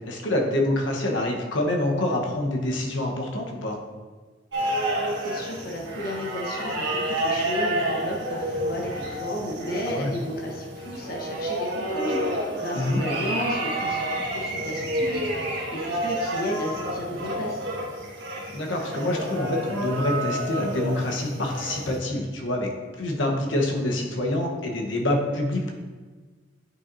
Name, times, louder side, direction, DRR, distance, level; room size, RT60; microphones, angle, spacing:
voice 1, 0.0-3.8 9.8-10.1 12.8-13.0 18.5-22.7 23.0-25.7, left 1 dB, 80° left, 0 dB, 1.1 m, -26 dB
sound 1, 4.5-22.0, right 1 dB, 65° right, 1.6 m, -29 dB
voice 2, 5.2-14.0 14.3-17.7, equal, 55° left, 0 dB, 1.1 m, -33 dB
9.4 x 5.9 x 2.7 m, 1.4 s
head